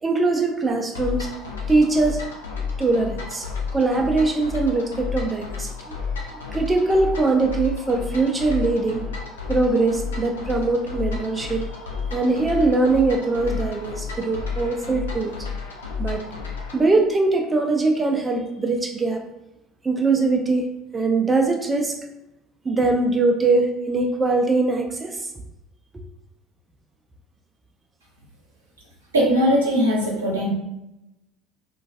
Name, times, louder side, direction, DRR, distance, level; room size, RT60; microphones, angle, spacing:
voice 1, 0.0-1.3 1.7-2.2 2.8-6.0 6.5-9.1 9.5-11.7 12.1-15.4 16.0-16.2 16.7-19.2 19.8-22.0 22.6-25.3 25.9-26.0, right 3 dB, 20° right, 3 dB, 0.3 m, -22 dB
sound 1, 0.9-16.8, left 5 dB, 75° left, 0.4 m, -31 dB
voice 2, 29.1-30.5, equal, 80° right, -4 dB, 0.6 m, -20 dB
2.3 x 2.2 x 2.4 m, 0.91 s
figure-of-eight pair, 60°, 0 cm